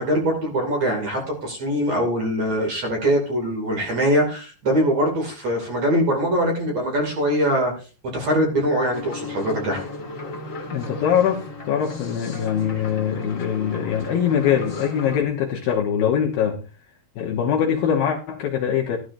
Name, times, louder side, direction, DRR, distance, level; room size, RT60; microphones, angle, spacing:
voice 1, 0.0-7.7 8.1-9.8, equal, 40° right, 1 dB, 3.2 m, -22 dB
sound 1, 8.9-15.2, left 3 dB, 45° left, 1.0 m, -34 dB
voice 2, 10.7-16.6 17.2-19.0, left 8 dB, 65° left, -1 dB, 2.5 m, -22 dB
14.5 x 12.5 x 2.7 m, 0.34 s
omnidirectional pair, 5.3 m